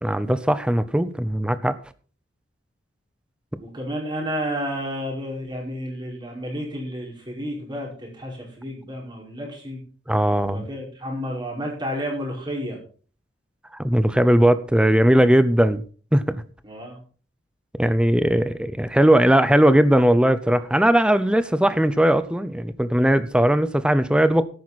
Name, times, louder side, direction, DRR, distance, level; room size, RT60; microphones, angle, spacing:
voice 1, 0.0-1.8 10.1-10.7 13.8-15.8 16.1-16.4 17.8-24.4, right 1 dB, 5° right, 13 dB, 0.6 m, -19 dB
voice 2, 3.6-9.8 10.5-12.8 16.6-17.0, equal, 25° right, -1 dB, 5.0 m, -31 dB
13.0 x 11.0 x 4.1 m, 0.40 s
head